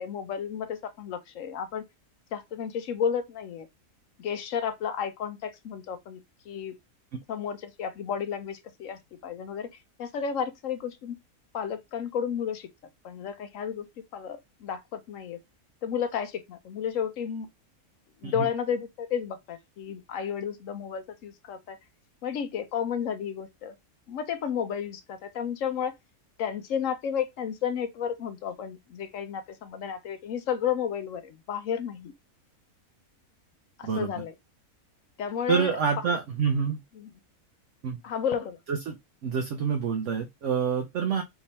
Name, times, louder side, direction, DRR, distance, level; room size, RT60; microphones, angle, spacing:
voice 1, 0.0-1.8 2.3-3.7 4.2-6.2 6.5-6.7 7.3-9.7 10.0-11.2 11.5-12.7 13.0-13.9 14.1-15.4 15.8-17.5 18.2-21.8 22.2-23.7 24.1-25.9 26.4-32.1 33.8-34.3 35.2-35.7 36.0-36.2 37.0-37.1 38.0-38.6, left 8 dB, 65° left, 1.0 m, -32 dB
voice 2, 35.5-36.8 37.8-38.0 38.7-39.0 39.2-41.2, right 6 dB, 60° right, 0.9 m, -27 dB
3.4 x 3.0 x 4.1 m
omnidirectional pair, 1.6 m